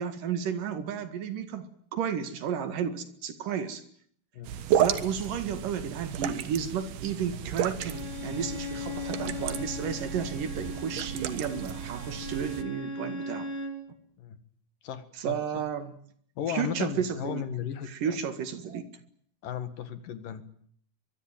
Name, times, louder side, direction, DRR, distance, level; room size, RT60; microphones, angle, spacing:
voice 1, 0.0-1.7 1.9-3.8 4.7-13.5 15.2-16.0 16.5-17.4 17.9-18.9, right 7 dB, 65° right, 10 dB, 3.4 m, -32 dB
sound 1, 4.4-12.6, right 10 dB, 85° right, 3.4 m, -33 dB
Bowed string instrument, 7.8-13.8, left 3 dB, 30° left, 5.1 m, -38 dB
voice 2, 14.8-15.6 16.4-18.2 19.4-20.4, left 9 dB, 65° left, 11 dB, 3.3 m, -35 dB
24.0 x 22.0 x 9.1 m, 0.64 s
omnidirectional pair, 4.3 m